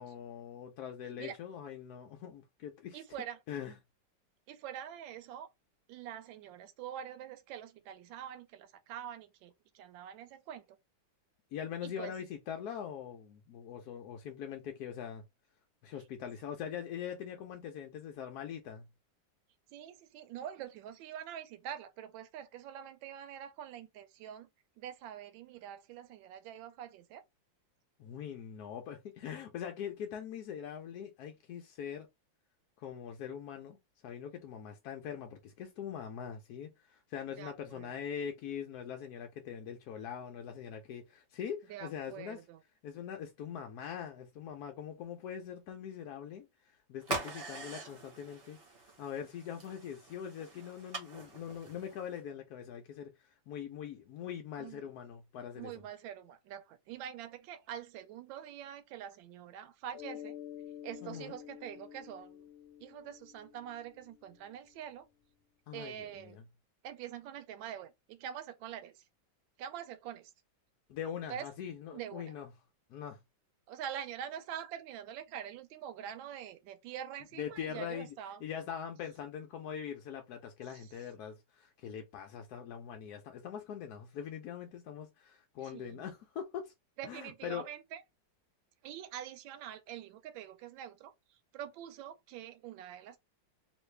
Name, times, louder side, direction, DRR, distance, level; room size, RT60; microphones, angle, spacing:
voice 1, 0.0-3.0 3.5-3.7 11.5-15.2 15.8-18.9 28.0-32.1 32.8-33.8 34.0-42.4 42.8-48.6 49.0-55.7 61.0-61.3 65.7-66.4 70.9-72.5 72.9-73.2 77.4-78.1 78.4-86.7 87.0-87.7, left 8 dB, 70° left, 0.9 m, -42 dB
voice 2, 2.9-3.4 4.5-5.5 5.9-10.7 11.8-12.1 19.7-24.5 24.8-27.2 37.4-37.9 41.7-42.6 54.6-54.8 55.6-60.3 60.8-62.5 62.8-65.1 65.7-66.4 66.8-69.0 69.6-70.3 71.3-71.5 71.9-72.3 73.7-78.4 80.7-80.9 85.6-86.0 87.0-88.0 88.8-93.2, right 10 dB, 80° right, 1.3 m, -45 dB
sound 1, 47.0-52.2, right 3 dB, 40° right, 0.9 m, -43 dB
Mallet percussion, 59.9-64.4, left 11 dB, 90° left, 0.5 m, -49 dB
3.2 x 2.6 x 3.2 m
omnidirectional pair, 2.1 m